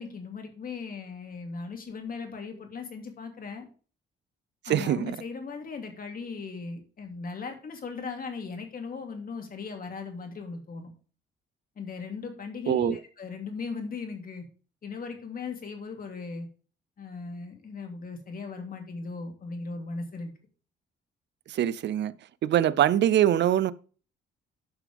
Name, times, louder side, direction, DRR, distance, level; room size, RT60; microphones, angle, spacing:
voice 1, 0.0-3.7 4.7-10.9 11.8-14.5 14.8-16.5 17.0-20.3, left 4 dB, 45° left, 2.5 m, -38 dB
voice 2, 4.7-5.2 12.7-13.0 21.5-22.2 22.4-23.7, right 11 dB, 65° right, 0.6 m, -23 dB
12.0 x 6.1 x 3.5 m
cardioid pair, 90°, 20 cm